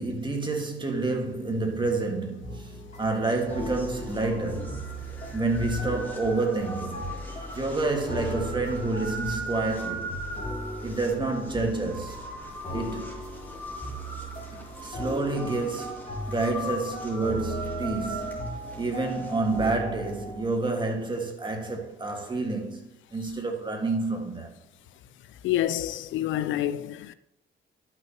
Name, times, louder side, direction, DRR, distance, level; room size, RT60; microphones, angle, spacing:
voice 1, 0.0-4.8 5.3-10.2 10.8-12.3 12.7-13.1 14.5-18.5 18.8-24.6, right 3 dB, 25° right, 1.7 m, -29 dB
sound 1, 2.4-20.4, equal, 35° left, 2.7 m, -37 dB
sound 2, 3.3-19.7, right 1 dB, 10° left, 2.7 m, -40 dB
voice 2, 25.4-27.1, left 12 dB, 75° left, 0.4 m, -28 dB
11.5 x 6.1 x 2.9 m
cardioid pair, 90°, 20 cm